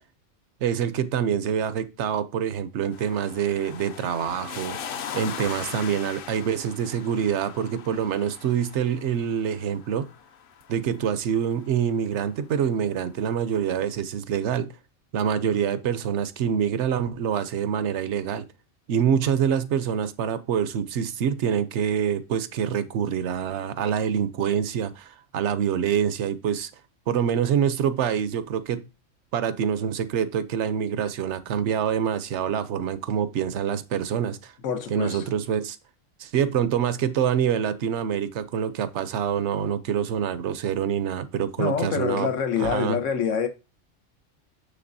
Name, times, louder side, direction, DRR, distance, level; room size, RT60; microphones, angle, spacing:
voice 1, 0.6-4.8 5.1-10.1 10.7-14.7 15.1-18.4 18.9-26.7 27.1-28.8 29.3-34.5 34.9-35.8 36.2-42.3 42.6-43.0, right 8 dB, 70° right, 0.9 m, -26 dB
sound 1, 2.9-12.0 13.3-13.4, left 7 dB, 55° left, 0.7 m, -40 dB
voice 2, 34.6-35.3 41.6-43.5, left 6 dB, 90° left, 1.2 m, -26 dB
6.7 x 6.4 x 2.6 m
omnidirectional pair, 1.3 m